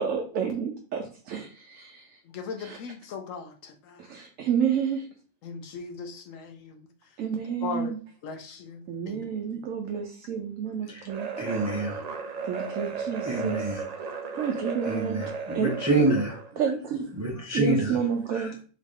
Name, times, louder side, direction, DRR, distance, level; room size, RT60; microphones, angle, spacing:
voice 1, 0.0-2.2 2.6-2.8 4.1-5.1 7.2-8.0 8.9-11.3 12.4-13.8 14.3-15.2 15.5-16.2 16.6-17.1 17.5-18.6, right 7 dB, 80° right, 1.0 m, -30 dB
voice 2, 2.3-4.1 5.4-6.9 7.6-7.9 8.2-9.2 10.7-10.9, left 5 dB, 80° left, 1.0 m, -38 dB
sound 1, 11.1-16.5, right 5 dB, 55° right, 0.4 m, -35 dB
voice 3, 11.4-12.0 13.3-13.8 14.9-16.3 17.2-18.0 18.3-18.6, right 1 dB, 15° right, 0.6 m, -27 dB
3.8 x 3.6 x 3.6 m
omnidirectional pair, 1.3 m